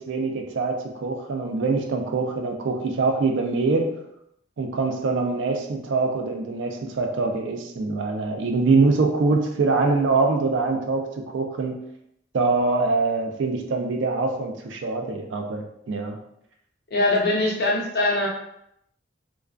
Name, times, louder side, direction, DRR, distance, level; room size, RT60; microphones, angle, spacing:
voice 1, 0.0-3.9 4.6-11.8 12.3-16.2, right 3 dB, 75° right, 3 dB, 0.4 m, -24 dB
voice 2, 16.9-18.3, left 2 dB, 55° left, -2 dB, 0.6 m, -22 dB
2.3 x 2.2 x 2.4 m, 0.77 s
head